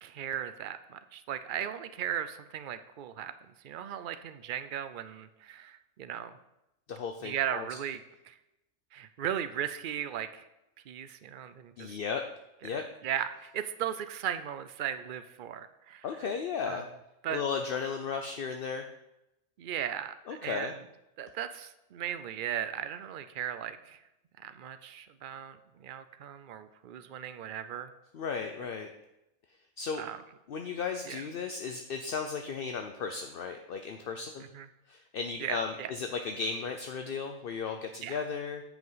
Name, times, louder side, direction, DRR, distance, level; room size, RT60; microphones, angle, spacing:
voice 1, 0.0-3.3 3.6-6.4 7.2-8.4 8.9-10.4 10.9-12.0 12.6-16.0 16.7-16.8 17.2-17.4 19.6-20.1 20.4-20.8 21.2-24.0 24.4-27.9 30.0-30.2 31.1-31.2 34.5-34.7 35.4-35.9 38.0-38.1, right 10 dB, 75° right, 11 dB, 0.4 m, -37 dB
voice 2, 6.9-7.7 11.8-12.2 12.6-12.8 16.0-16.9 17.3-18.9 20.3-20.7 28.1-28.9 29.8-30.0 30.5-34.5 34.9-38.6, left 5 dB, 55° left, 5 dB, 0.6 m, -35 dB
9.4 x 5.1 x 5.5 m, 0.89 s
omnidirectional pair, 1.5 m